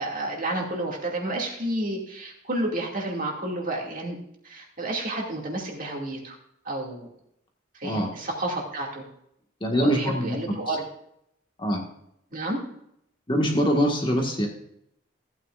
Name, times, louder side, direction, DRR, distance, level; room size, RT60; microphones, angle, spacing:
voice 1, 0.0-4.2 4.4-6.4 6.6-7.1 7.7-9.0 9.7-10.8 12.3-12.6, right 1 dB, 45° right, 0 dB, 2.4 m, -30 dB
voice 2, 9.6-10.6 11.6-11.8 13.3-14.5, equal, 25° left, 1 dB, 1.7 m, -24 dB
15.0 x 9.2 x 2.5 m, 0.74 s
head